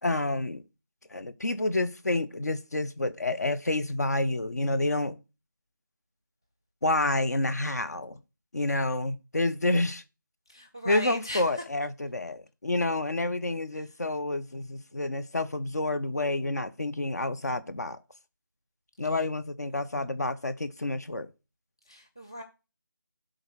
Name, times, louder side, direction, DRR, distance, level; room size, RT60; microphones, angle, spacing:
voice 1, 0.0-0.6 1.1-5.2 6.8-8.2 8.5-10.0 10.8-18.0 19.0-21.3, left 2 dB, 50° left, 0.9 m, -29 dB
voice 2, 10.5-11.6 19.1-19.2 21.9-22.4, equal, 10° left, 0.3 m, -38 dB
7.9 x 3.8 x 6.2 m
figure-of-eight pair, 165°, 11 cm